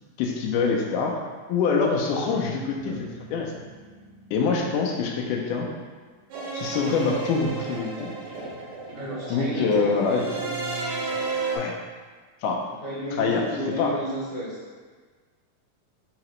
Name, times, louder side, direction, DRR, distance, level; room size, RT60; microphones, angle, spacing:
voice 1, 0.2-1.2 1.5-3.5 4.3-5.7 6.5-8.1 9.3-10.3 11.5-11.8 12.4-12.6 13.2-13.4 13.8-13.9, left 4 dB, 85° left, 0 dB, 2.2 m, -25 dB
Guitar, 2.6-6.1 7.6-8.0 8.3-11.2, right 3 dB, 75° right, 2.2 m, -44 dB
sound 1, 6.3-11.6, right 4 dB, 90° right, 2.4 m, -33 dB
voice 2, 8.9-10.0 12.8-14.6, equal, 60° left, -12 dB, 1.2 m, -32 dB
5.6 x 2.9 x 3.0 m, 1.5 s
omnidirectional pair, 3.6 m